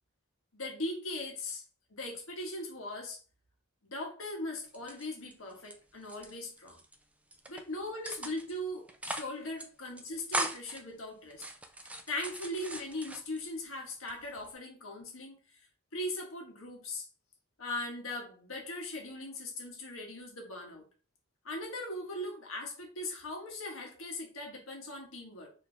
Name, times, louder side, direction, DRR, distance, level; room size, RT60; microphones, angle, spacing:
voice 1, 0.5-1.6 1.9-3.2 3.8-6.8 7.5-11.4 12.1-15.4 15.9-17.1 17.6-20.8 21.4-25.5, left 1 dB, 80° left, 1.5 m, -39 dB
sound 1, 4.7-5.7 6.0-6.9 7.3-7.6 8.0-8.6 8.9-9.3 9.6-9.7 10.0-10.8 11.3-13.5 13.9-14.5, right 1 dB, 5° right, 0.4 m, -39 dB
4.4 x 3.1 x 3.4 m
head